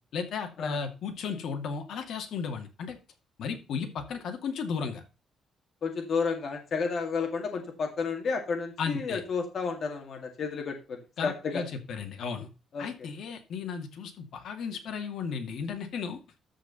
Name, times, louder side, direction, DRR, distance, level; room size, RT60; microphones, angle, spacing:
voice 1, 0.1-3.0 3.4-5.0 8.8-9.2 11.2-12.5 12.8-16.4, left 6 dB, 60° left, 5 dB, 2.3 m, -34 dB
voice 2, 5.8-11.6 12.7-13.1, left 5 dB, 40° left, 3 dB, 2.1 m, -32 dB
14.0 x 5.2 x 5.5 m, 0.31 s
cardioid pair, 170°, 0 cm